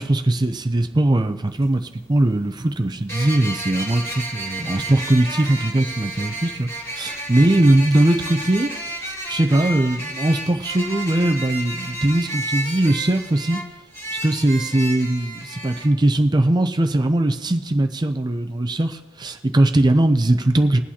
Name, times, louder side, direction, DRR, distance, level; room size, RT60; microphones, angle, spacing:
voice 1, 0.0-8.7 9.3-13.6 14.1-20.8, right 1 dB, 25° right, 6 dB, 0.5 m, -20 dB
sound 1, 3.1-15.9, right 1 dB, 15° left, 2.2 m, -31 dB
21.0 x 8.7 x 2.9 m, 1.1 s
head